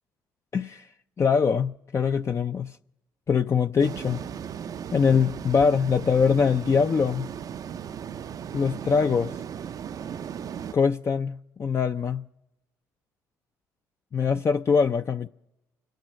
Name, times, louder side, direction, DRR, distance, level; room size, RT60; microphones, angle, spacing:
voice 1, 0.5-0.9 1.2-2.7 3.3-4.2 4.9-7.3 8.5-9.3 10.7-12.2 14.1-15.3, left 6 dB, 35° left, 0.4 m, -23 dB
sound 1, 3.8-10.7, right 8 dB, 45° right, 0.4 m, -37 dB
26.0 x 9.2 x 5.1 m
hypercardioid pair, 65°, 8 cm